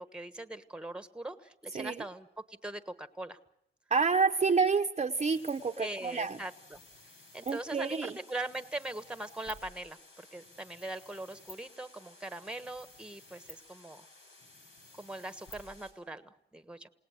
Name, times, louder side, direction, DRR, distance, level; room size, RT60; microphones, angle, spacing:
voice 1, 0.0-3.4 5.8-6.8 7.3-14.1 15.0-16.9, right 2 dB, 5° right, 11 dB, 1.3 m, -41 dB
voice 2, 3.9-6.4 7.5-8.1, right 5 dB, 35° right, 6 dB, 0.8 m, -28 dB
sound 1, 5.1-15.9, left 1 dB, 85° left, 6.8 m, -54 dB
28.5 x 18.5 x 7.9 m, 0.82 s
cardioid pair, 95°, 19 cm